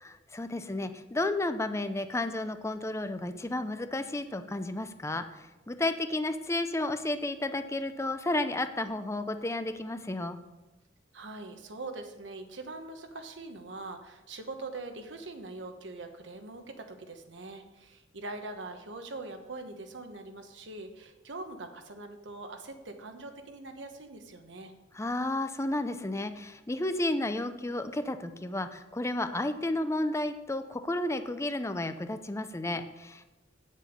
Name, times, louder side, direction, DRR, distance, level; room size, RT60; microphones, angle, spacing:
voice 1, 0.3-10.4 24.9-33.2, left 2 dB, 15° left, 9 dB, 0.5 m, -32 dB
voice 2, 11.1-24.7, right 2 dB, 75° right, 6 dB, 1.1 m, -43 dB
9.0 x 7.5 x 5.2 m, 1.1 s
head